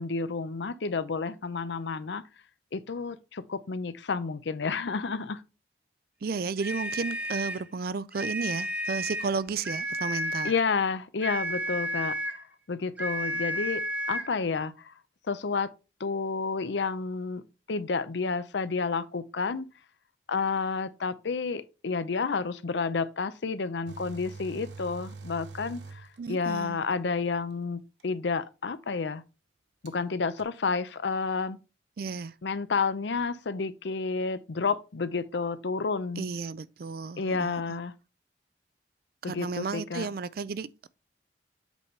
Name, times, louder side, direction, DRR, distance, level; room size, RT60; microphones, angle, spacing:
voice 1, 0.0-2.2 2.7-5.4 10.4-12.4 12.7-13.8 14.1-14.9 15.3-15.7 16.0-17.4 17.7-19.7 20.3-29.2 29.8-31.6 32.4-36.2 37.2-37.9 39.2-40.1, left 4 dB, 80° left, 0.6 m, -30 dB
voice 2, 6.2-10.5 26.2-26.8 32.0-32.3 36.2-37.8 39.2-40.9, right 4 dB, 55° right, 0.4 m, -33 dB
sound 1, 6.6-7.7 8.1-9.4 9.6-10.6 11.2-12.4 13.0-14.3, equal, 10° right, 0.8 m, -32 dB
sound 2, 23.9-26.7 28.0-28.1 29.9-30.0 30.4-30.5, right 3 dB, 75° right, 0.9 m, -44 dB
8.3 x 5.3 x 3.2 m
head